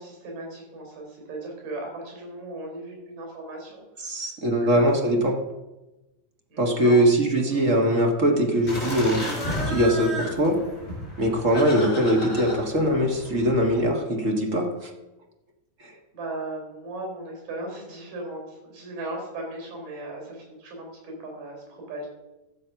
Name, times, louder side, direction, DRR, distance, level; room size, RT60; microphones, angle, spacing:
voice 1, 0.0-4.2 4.6-4.8 6.5-7.0 7.5-7.6 16.1-22.1, right 2 dB, 90° right, 0 dB, 5.8 m, -37 dB
voice 2, 4.0-5.4 6.6-10.6 11.2-14.9 15.8-15.9, equal, 40° right, 1 dB, 1.2 m, -22 dB
sound 1, 8.7-13.8, equal, 20° left, 4.7 m, -33 dB
13.5 x 7.5 x 5.8 m, 1.0 s
omnidirectional pair, 3.7 m